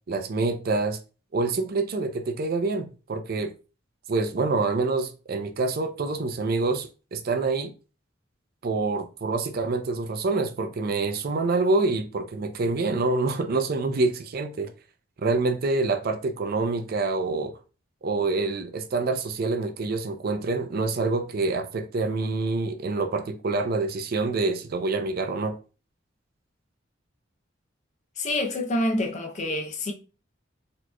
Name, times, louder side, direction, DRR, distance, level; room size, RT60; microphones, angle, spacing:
voice 1, 0.1-1.0 1.3-3.5 4.1-7.7 8.6-14.7 15.2-17.6 18.0-25.6, right 3 dB, 50° right, 0.4 m, -26 dB
voice 2, 28.2-29.9, left 1 dB, 35° left, 0.5 m, -27 dB
4.1 x 2.9 x 2.2 m
head